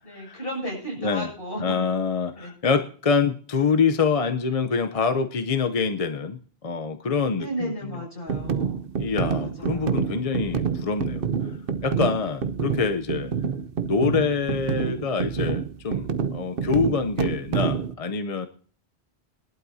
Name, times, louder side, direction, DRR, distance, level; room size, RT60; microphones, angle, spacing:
voice 1, 0.0-1.9 2.4-2.5 7.4-8.8 9.4-10.0, equal, 65° left, -2 dB, 7.4 m, -34 dB
voice 2, 1.6-6.4 6.6-7.7 9.0-11.2 11.8-13.3 13.8-18.5, left 5 dB, 40° left, 8 dB, 0.7 m, -25 dB
sound 1, 8.3-17.9, right 6 dB, 65° right, 1.0 m, -27 dB
20.5 x 11.5 x 2.7 m, 0.43 s
omnidirectional pair, 1.1 m